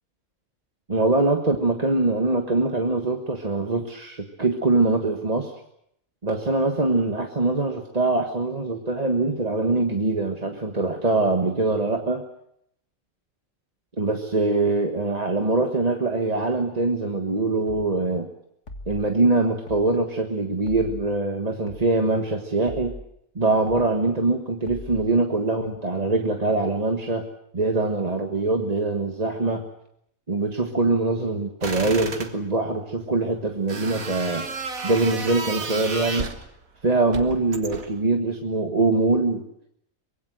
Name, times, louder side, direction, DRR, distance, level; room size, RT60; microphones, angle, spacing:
voice 1, 0.9-5.5 6.2-12.2 14.0-18.3 18.9-22.9 23.3-27.3 27.5-29.7 30.3-34.5 34.8-36.3 36.8-39.4, right 3 dB, 30° right, 3 dB, 1.6 m, -23 dB
sound 1, 17.7-17.9 18.7-19.0 19.7-19.9 20.7-21.0 21.7-21.9 22.7-23.0 23.7-23.9 24.7-25.0, left 1 dB, 60° left, 2.1 m, -39 dB
sound 2, 31.6-32.3 33.7-36.5 37.1-38.0, right 4 dB, 90° right, 2.4 m, -32 dB
24.5 x 21.5 x 7.8 m, 0.75 s
omnidirectional pair, 1.4 m